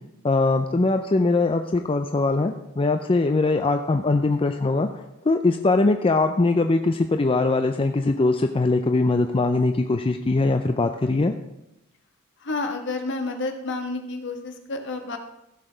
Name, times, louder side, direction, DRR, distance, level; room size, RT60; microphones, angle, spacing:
voice 1, 0.2-11.3, left 3 dB, 25° left, 6 dB, 0.4 m, -21 dB
voice 2, 12.4-15.2, left 3 dB, 55° left, 4 dB, 1.5 m, -30 dB
15.0 x 6.8 x 5.1 m, 0.88 s
head